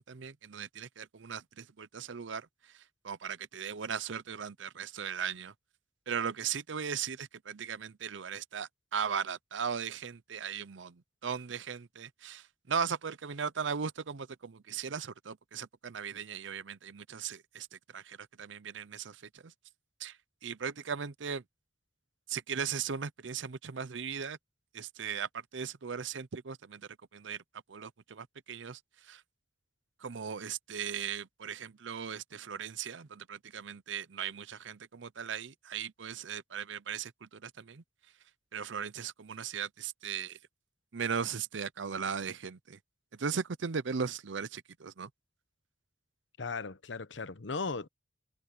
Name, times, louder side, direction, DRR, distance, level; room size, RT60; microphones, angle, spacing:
voice 1, 0.0-2.5 3.0-5.5 6.1-17.7 17.9-19.2 20.0-20.1 20.4-21.4 22.3-24.4 24.7-26.8 27.1-27.4 27.7-28.8 29.1-29.2 30.0-37.8 38.5-40.4 40.9-42.8 43.2-45.1, right 6 dB, 75° right, 0.7 m, -38 dB
voice 2, 46.4-47.9, left 4 dB, 75° left, 1.0 m, -37 dB
head